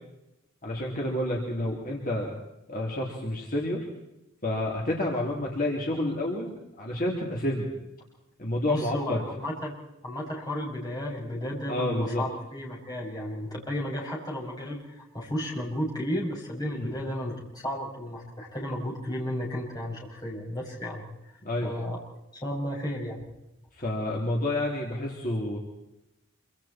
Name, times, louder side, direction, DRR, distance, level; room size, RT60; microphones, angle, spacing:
voice 1, 0.6-2.3 2.7-3.8 4.4-7.7 8.4-9.2 11.7-12.2 16.7-16.9 21.4-21.7 23.8-25.6, left 1 dB, 45° left, -2 dB, 3.5 m, -29 dB
voice 2, 8.6-9.7 10.0-22.0 22.4-23.2, equal, 20° left, -3 dB, 6.8 m, -33 dB
27.0 x 25.5 x 4.5 m, 0.90 s
head